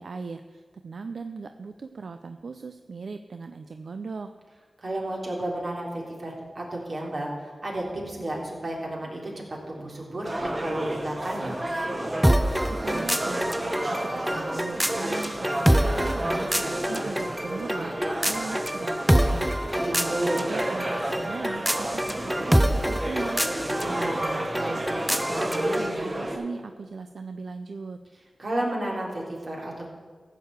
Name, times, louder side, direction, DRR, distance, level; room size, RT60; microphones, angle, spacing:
voice 1, 0.0-4.3 12.6-28.0, right 4 dB, 80° right, 8 dB, 0.4 m, -38 dB
voice 2, 4.8-9.3 9.7-11.6 19.7-20.4 23.7-24.2 28.4-29.9, right 1 dB, 55° right, -2 dB, 3.1 m, -32 dB
sound 1, 10.2-26.4, right 1 dB, 35° right, 1.8 m, -31 dB
sound 2, 12.2-25.9, equal, 5° right, 0.5 m, -26 dB
14.5 x 4.8 x 8.0 m, 1.5 s
wide cardioid pair, 60°, 0 cm